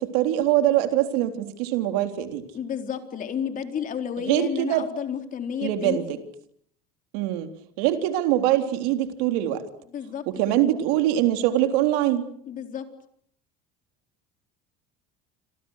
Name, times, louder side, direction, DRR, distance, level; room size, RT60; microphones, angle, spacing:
voice 1, 0.0-2.5 4.2-4.9 5.6-6.2 7.1-7.5 7.8-9.6 10.3-12.2, right 13 dB, 80° right, 6 dB, 3.7 m, -23 dB
voice 2, 2.5-6.0 9.9-10.6 12.5-12.9, left 8 dB, 40° left, 6 dB, 4.1 m, -31 dB
28.0 x 27.0 x 6.6 m, 0.65 s
supercardioid pair, 110°, 20 cm